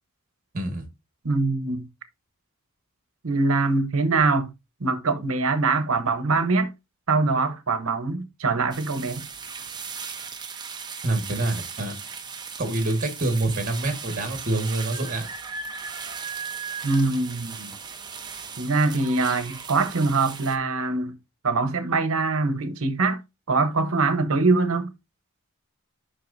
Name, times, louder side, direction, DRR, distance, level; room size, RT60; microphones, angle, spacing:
voice 1, 0.5-0.8 11.0-11.9 12.6-15.3, right 2 dB, 40° right, 1.6 m, -26 dB
voice 2, 1.2-1.9 3.2-4.5 4.8-6.7 7.1-9.3 16.8-17.8 18.6-21.2 21.4-23.2 23.5-24.9, right 3 dB, 70° right, 1.0 m, -23 dB
sound 1, 8.7-20.6, right 5 dB, 20° right, 0.8 m, -37 dB
7.6 x 5.6 x 2.6 m
head